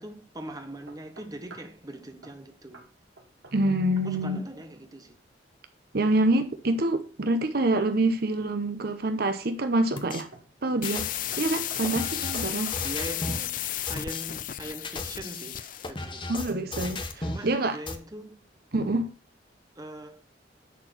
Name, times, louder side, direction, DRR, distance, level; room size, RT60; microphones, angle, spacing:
voice 1, 0.0-2.8 4.0-5.2 12.8-16.3 17.2-18.4 19.8-20.2, right 1 dB, 20° right, 1.1 m, -41 dB
sound 1, 0.9-1.8 2.2-2.4 2.7-2.9 3.2-3.9 4.1-4.5 7.9-8.5 9.1-9.5 10.3-10.6 10.9-11.1 11.3-13.2, right 3 dB, 90° right, 2.1 m, -50 dB
voice 2, 3.5-4.4 5.9-10.3 10.6-11.1 11.4-12.7 16.3-17.8 18.7-19.1, right 2 dB, 55° right, 0.8 m, -26 dB
sound 2, 10.0-10.2 10.8-13.5 13.9-14.2 14.7-17.5 17.9-18.0, left 2 dB, 25° left, 1.1 m, -36 dB
sound 3, 10.8-16.0, left 13 dB, 45° left, 0.4 m, -33 dB
10.0 x 4.5 x 5.9 m
head